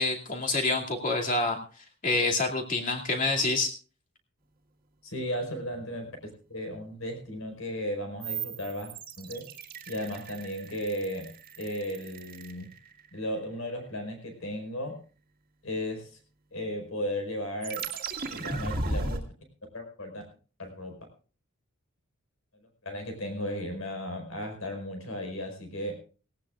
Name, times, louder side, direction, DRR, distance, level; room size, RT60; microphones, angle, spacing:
voice 1, 0.0-1.6 2.0-3.7, left 3 dB, 40° left, 1 dB, 2.5 m, -27 dB
voice 2, 5.0-8.9 9.2-9.5 9.9-11.3 11.6-12.7 13.1-15.0 15.6-16.2 16.5-17.9 18.3-19.2 19.7-20.2 20.6-20.9 22.8-26.0, equal, 70° left, 5 dB, 4.9 m, -35 dB
sound 1, 8.2-13.2 17.6-19.2, right 3 dB, 40° right, 1.9 m, -36 dB
18.0 x 18.0 x 2.5 m, 0.38 s
head